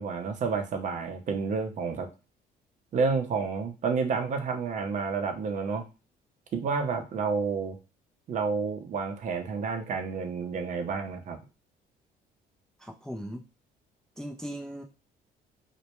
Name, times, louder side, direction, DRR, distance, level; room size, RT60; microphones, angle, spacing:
voice 1, 0.0-2.1 2.9-5.8 6.5-7.8 8.3-11.4, right 5 dB, 45° right, 6 dB, 0.5 m, -30 dB
voice 2, 12.8-13.4 14.2-14.8, equal, 5° left, 1 dB, 0.3 m, -38 dB
2.1 x 2.1 x 2.9 m, 0.30 s
cardioid pair, 110°, 17 cm